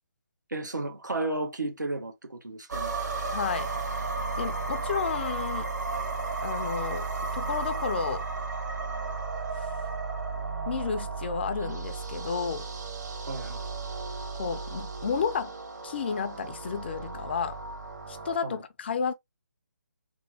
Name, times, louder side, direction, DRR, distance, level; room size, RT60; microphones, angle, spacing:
voice 1, 0.5-2.9 13.3-13.6 18.4-18.6, right 2 dB, 85° right, 1.4 m, -33 dB
sound 1, 2.7-18.4, right 4 dB, 70° right, 1.7 m, -34 dB
voice 2, 3.3-3.7 4.4-5.7 6.4-7.1 7.3-8.3 9.6-9.7 10.7-12.7 14.3-15.5 15.8-17.6 18.1-19.1, left 6 dB, 35° left, 0.4 m, -31 dB
3.6 x 3.5 x 2.8 m
figure-of-eight pair, 150°, 10 cm